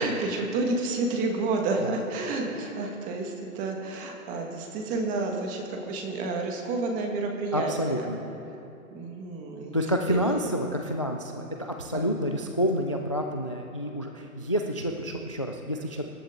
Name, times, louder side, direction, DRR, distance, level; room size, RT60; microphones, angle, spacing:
voice 1, 0.0-8.1 8.9-9.8 10.1-10.4 11.9-12.0, right 3 dB, 20° right, 2 dB, 1.7 m, -30 dB
voice 2, 7.5-8.2 9.7-16.1, equal, 25° left, 4 dB, 0.3 m, -29 dB
25.5 x 12.0 x 3.7 m, 2.8 s
hypercardioid pair, 150°, 44 cm